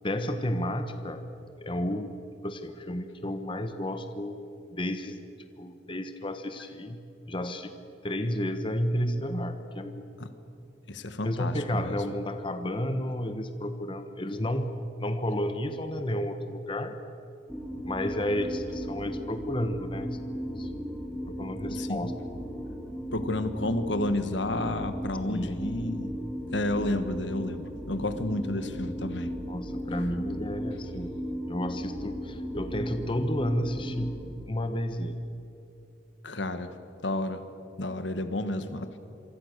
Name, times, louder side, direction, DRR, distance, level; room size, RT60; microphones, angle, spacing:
voice 1, 0.0-1.3 1.6-2.1 2.4-4.4 4.7-5.2 5.6-7.7 8.0-10.1 11.2-14.7 15.0-17.0 17.8-20.3 20.6-20.7 21.2-22.1 25.3-25.7 29.4-31.1 31.5-34.1 34.5-35.2, left 1 dB, 25° left, 8 dB, 1.2 m, -31 dB
voice 2, 10.9-12.0 21.7-22.1 23.1-26.1 26.5-29.3 36.2-36.7 37.0-37.4 37.8-39.0, left 1 dB, 70° left, 10 dB, 1.6 m, -31 dB
sound 1, 17.5-34.2, equal, 5° left, 3.9 m, -36 dB
27.0 x 24.0 x 6.7 m, 2.8 s
head